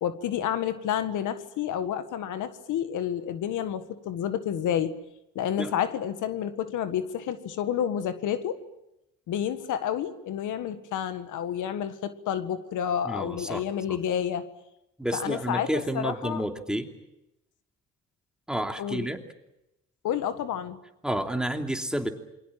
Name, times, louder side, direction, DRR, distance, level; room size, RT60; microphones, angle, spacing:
voice 1, 0.0-4.9 5.4-8.6 9.3-14.4 15.1-16.4 18.8-19.1 20.0-20.8, left 9 dB, 85° left, 11 dB, 1.7 m, -30 dB
voice 2, 13.1-13.6 15.0-16.9 18.5-19.2 21.0-22.1, right 1 dB, 5° right, 4 dB, 2.9 m, -30 dB
28.0 x 22.5 x 7.6 m, 0.88 s
cardioid pair, 90°, 30 cm